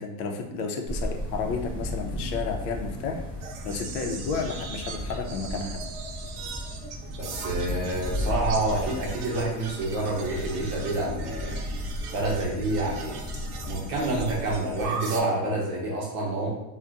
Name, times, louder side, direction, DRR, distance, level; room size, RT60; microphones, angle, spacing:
voice 1, 0.0-3.2 3.6-5.8, left 4 dB, 80° left, 3 dB, 0.6 m, -32 dB
sound 1, 0.8-14.4, left 1 dB, 5° right, 0.4 m, -36 dB
sound 2, 3.4-15.2, right 3 dB, 80° right, 0.6 m, -38 dB
voice 2, 7.2-11.6 12.1-13.2 13.6-16.5, right 2 dB, 35° right, -3 dB, 0.7 m, -28 dB
2.3 x 2.2 x 3.7 m, 0.98 s
supercardioid pair, 165°, 45 cm